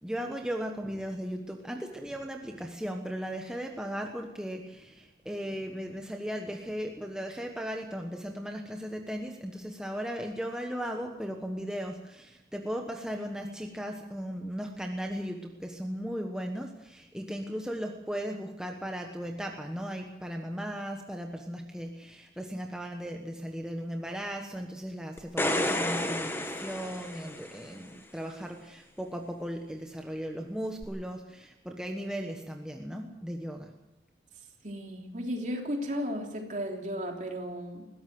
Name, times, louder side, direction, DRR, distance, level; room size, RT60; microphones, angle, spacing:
voice 1, 0.0-33.7, equal, 5° right, 2 dB, 1.3 m, -37 dB
sound 1, 25.2-27.7 30.8-30.9, left 1 dB, 15° left, 1.5 m, -31 dB
voice 2, 34.6-37.9, equal, 45° right, 2 dB, 3.2 m, -34 dB
20.5 x 16.5 x 7.8 m, 0.98 s
head